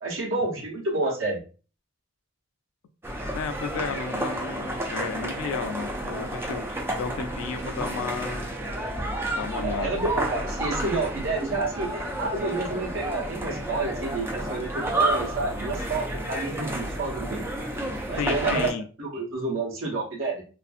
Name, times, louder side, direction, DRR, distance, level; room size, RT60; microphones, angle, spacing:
voice 1, 0.0-1.4 9.6-17.4 18.0-18.7 19.0-20.4, right 3 dB, 75° right, -2 dB, 0.9 m, -29 dB
sound 1, 3.0-18.7, right 1 dB, 10° right, 0.4 m, -31 dB
voice 2, 3.3-8.5 9.4-9.9 18.2-18.8, left 5 dB, 85° left, 8 dB, 0.3 m, -33 dB
2.6 x 2.5 x 2.4 m, 0.37 s
head